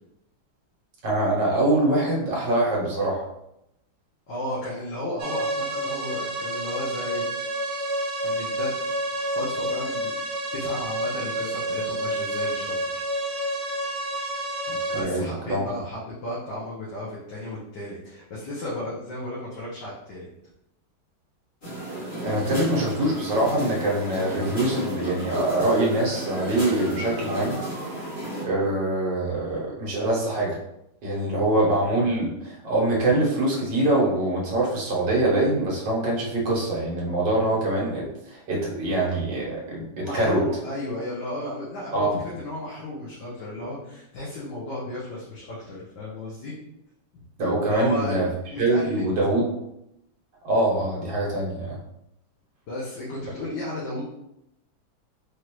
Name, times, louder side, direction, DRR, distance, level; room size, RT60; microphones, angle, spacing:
voice 1, 1.0-3.3 14.7-15.6 22.2-27.6 28.4-30.6 31.0-40.4 41.9-42.2 47.4-48.3 48.6-49.5 50.4-51.8, right 1 dB, 65° right, -4 dB, 1.7 m, -24 dB
voice 2, 4.3-7.2 8.2-8.7 9.1-13.0 14.9-20.3 40.0-46.5 47.6-48.2 48.5-49.0 52.7-54.0, left 1 dB, 65° left, -7 dB, 1.6 m, -34 dB
sound 1, 5.2-15.0, right 1 dB, 85° right, 0.6 m, -29 dB
sound 2, 21.6-28.4, right 1 dB, 35° left, 1.5 m, -33 dB
4.9 x 3.1 x 3.0 m, 0.84 s
omnidirectional pair, 2.1 m